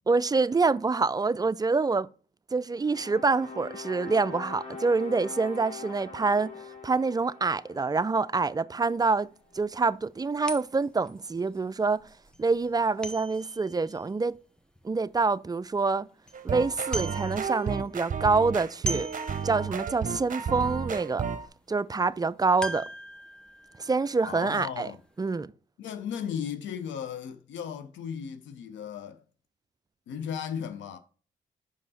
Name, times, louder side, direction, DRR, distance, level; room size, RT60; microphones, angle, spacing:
voice 1, 0.1-2.1 2.5-6.5 6.8-9.3 9.5-12.0 12.4-14.4 14.8-16.1 16.4-19.1 19.4-21.3 21.7-22.9 23.8-24.9 25.2-25.5, right 4 dB, 20° right, 0.4 m, -26 dB
sound 1, 2.7-9.0, left 4 dB, 50° left, 3.3 m, -43 dB
sound 2, 9.0-9.1 9.6-9.7 10.5-15.2 15.6-15.7 16.0-16.4 16.7-17.8 18.0-20.0 20.4-20.5 21.0-21.2 22.6-25.0 25.3-25.4, right 1 dB, 5° left, 0.8 m, -40 dB
sound 3, 16.3-21.5, right 6 dB, 45° right, 0.7 m, -32 dB
voice 2, 24.2-25.0 25.8-29.2 30.1-31.0, left 8 dB, 80° left, 0.8 m, -36 dB
5.4 x 5.2 x 4.1 m
supercardioid pair, 55°, 19 cm